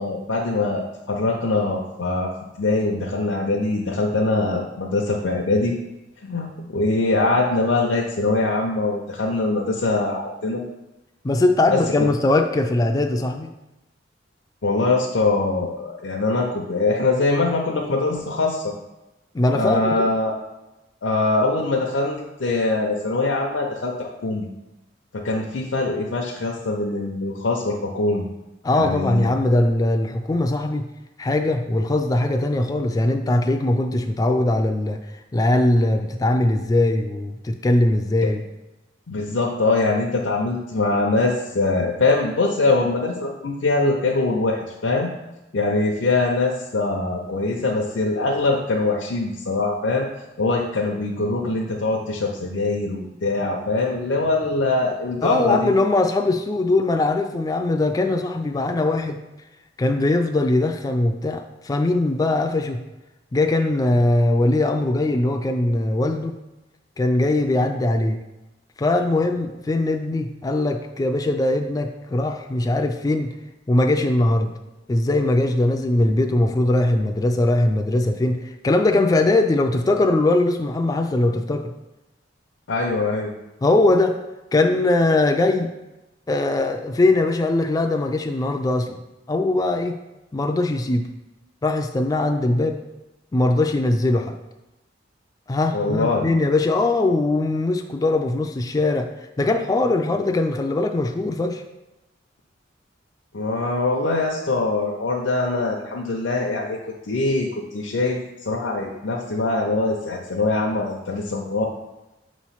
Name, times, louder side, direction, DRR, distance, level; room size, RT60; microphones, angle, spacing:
voice 1, 0.0-2.3 2.6-5.8 6.2-10.6 11.7-11.8 14.6-18.7 19.5-20.3 21.0-24.5 25.1-28.3 28.7-29.3 39.1-45.1 45.5-50.1 50.4-55.7 82.7-83.3 95.7-96.2 103.3-106.8 107.1-111.7, left 3 dB, 75° left, -1 dB, 0.6 m, -23 dB
voice 2, 11.2-13.5 19.3-20.1 28.6-30.8 31.2-35.0 35.3-38.4 55.2-59.2 59.8-62.8 63.3-66.4 67.0-68.2 68.8-73.3 73.7-74.5 74.9-81.7 83.6-84.2 84.5-85.7 86.3-89.0 89.3-90.0 90.3-91.1 91.6-92.8 93.3-94.4 95.5-99.1 99.4-101.6, left 2 dB, 20° left, 4 dB, 0.3 m, -21 dB
6.1 x 3.0 x 5.6 m, 1.0 s
head